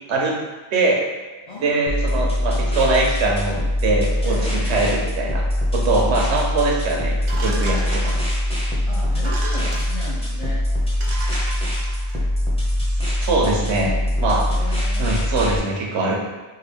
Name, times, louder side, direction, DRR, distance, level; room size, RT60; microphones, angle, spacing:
voice 1, 0.7-1.0 1.6-5.4 5.7-8.2 13.0-13.9 14.2-14.5 15.0-16.2, right 2 dB, 85° right, -1 dB, 1.0 m, -22 dB
voice 2, 1.5-2.6 4.2-4.9 7.5-8.3 8.8-10.6 14.2-15.2, left 2 dB, 45° left, -6 dB, 0.5 m, -36 dB
sound 1, 1.9-15.6, left 1 dB, 5° left, 0.6 m, -22 dB
sound 2, 7.3-8.6 9.1-10.2 10.7-10.8 11.0-12.2, right 3 dB, 50° right, 0.3 m, -34 dB
3.6 x 2.2 x 3.3 m, 1.2 s
omnidirectional pair, 1.1 m